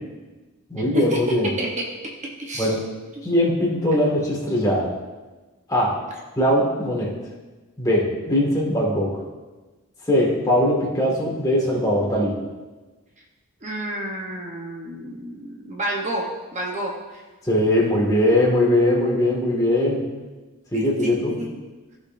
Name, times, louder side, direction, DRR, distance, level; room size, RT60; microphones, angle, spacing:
voice 1, 0.7-1.5 2.5-2.8 3.2-4.9 5.7-6.0 6.4-7.1 7.8-9.1 10.1-12.3 17.5-20.0 20.7-21.4, left 1 dB, 15° left, -4 dB, 1.7 m, -20 dB
voice 2, 2.4-2.8 13.6-16.2 16.5-17.2 20.7-21.1 21.4-21.5, right 1 dB, 35° right, -1 dB, 0.8 m, -30 dB
15.0 x 5.2 x 2.5 m, 1.2 s
head